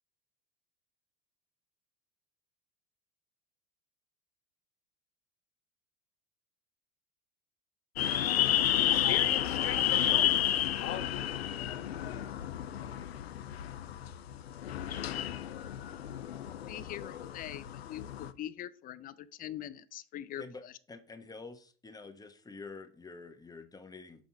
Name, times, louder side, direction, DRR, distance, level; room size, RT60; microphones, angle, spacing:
sound 1, 8.0-18.3, left 11 dB, 80° left, 0.6 m, -31 dB
voice 1, 8.9-10.5 10.8-11.3, left 9 dB, 45° left, 9 dB, 1.4 m, -40 dB
voice 2, 16.5-20.8, left 11 dB, 30° left, 14 dB, 0.5 m, -43 dB
voice 3, 20.9-24.3, left 4 dB, 10° left, 8 dB, 0.9 m, -48 dB
6.2 x 5.4 x 4.5 m, 0.42 s
hypercardioid pair, 80°, 30 cm